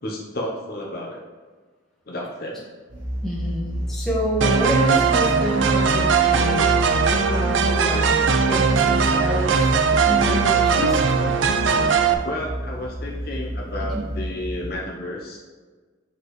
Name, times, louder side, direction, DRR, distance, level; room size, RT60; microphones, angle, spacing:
voice 1, 0.0-1.2 2.1-2.6 12.2-15.4, left 1 dB, 50° left, -2 dB, 0.8 m, -31 dB
sound 1, 2.9-14.7, equal, 20° right, 1.4 m, -29 dB
voice 2, 3.2-11.0 13.9-14.1, equal, ahead, -7 dB, 1.4 m, -28 dB
sound 2, 4.4-12.1, right 5 dB, 70° right, 0.5 m, -20 dB
6.7 x 4.7 x 3.1 m, 1.4 s
head